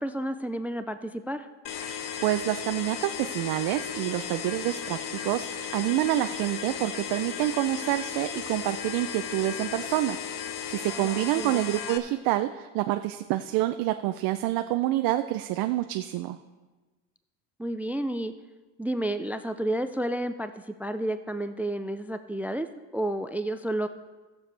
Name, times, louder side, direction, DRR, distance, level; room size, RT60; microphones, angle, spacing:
voice 1, 0.0-1.5 11.0-11.6 17.6-18.3 18.8-22.7 22.9-23.9, right 1 dB, 5° right, 11 dB, 0.3 m, -31 dB
sound 1, 1.7-12.0, left 8 dB, 60° left, 1.0 m, -35 dB
voice 2, 1.9-16.4, right 15 dB, 65° right, 8 dB, 0.6 m, -28 dB
18.0 x 6.9 x 3.3 m, 1.2 s
supercardioid pair, 90°, 38 cm